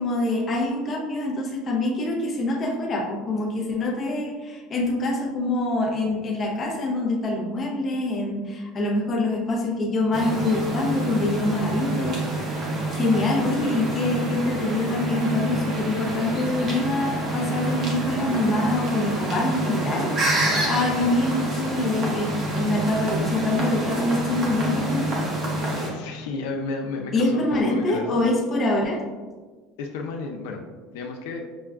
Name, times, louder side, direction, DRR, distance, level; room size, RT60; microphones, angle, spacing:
voice 1, 0.0-12.2 12.9-25.1 27.1-29.0, left 2 dB, 20° left, -2 dB, 0.6 m, -25 dB
sound 1, 10.1-25.9, right 1 dB, 30° right, 0.8 m, -27 dB
voice 2, 25.6-28.3 29.8-30.6 30.9-31.5, left 3 dB, 80° left, 2 dB, 0.4 m, -32 dB
6.0 x 2.2 x 2.3 m, 1.4 s
cardioid pair, 175°, 0 cm